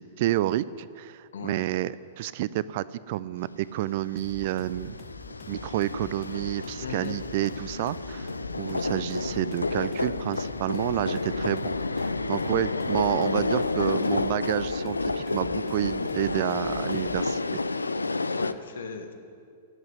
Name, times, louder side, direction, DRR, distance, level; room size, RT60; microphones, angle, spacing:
voice 1, 0.0-4.9 5.5-8.3 8.5-17.4, right 14 dB, 50° right, 18 dB, 0.3 m, -29 dB
voice 2, 1.3-1.6 6.8-7.2 12.5-12.7 18.2-19.1, left 6 dB, 65° left, 7 dB, 1.3 m, -38 dB
sound 1, 4.2-18.5, left 3 dB, 80° left, 0.4 m, -30 dB
sound 2, 4.2-17.3, left 4 dB, 30° left, 1.6 m, -48 dB
10.5 x 8.0 x 9.6 m, 2.3 s
figure-of-eight pair, 105°, 0 cm